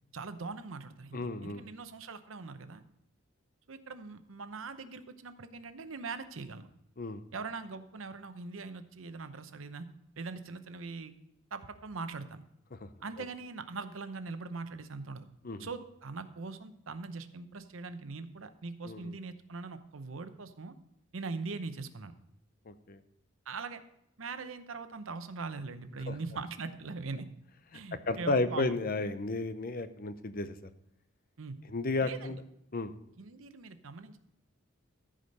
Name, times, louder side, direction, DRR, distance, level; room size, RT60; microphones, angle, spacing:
voice 1, 0.1-2.8 3.7-6.7 7.3-9.9 10.2-11.1 11.5-12.4 13.0-15.3 15.6-20.7 21.1-22.1 23.5-23.8 24.2-27.3 27.7-28.8 31.4-31.6 32.0-32.4 33.2-34.2, right 4 dB, 85° right, 10 dB, 0.8 m, -41 dB
voice 2, 1.1-1.6 7.0-7.2 12.8-12.9 15.4-15.7 18.9-19.1 22.7-23.0 26.1-26.2 28.1-30.6 31.7-32.4 32.7-32.9, left 2 dB, 45° left, 11 dB, 0.7 m, -33 dB
14.5 x 5.0 x 5.3 m, 0.79 s
head